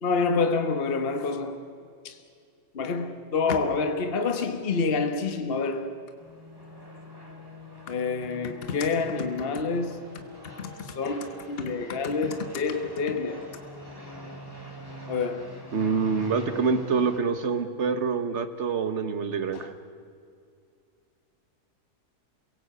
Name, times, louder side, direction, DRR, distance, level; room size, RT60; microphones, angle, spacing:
voice 1, 0.0-1.7 2.0-2.2 2.7-6.0 7.9-10.0 10.6-13.4 15.1-15.5 19.5-19.7, left 4 dB, 40° left, 1.3 m, -28 dB
sound 1, 6.2-17.2, equal, 15° right, 3.2 m, -44 dB
voice 2, 15.7-19.7, right 5 dB, 50° right, 1.6 m, -26 dB
28.0 x 17.5 x 8.1 m
omnidirectional pair, 1.7 m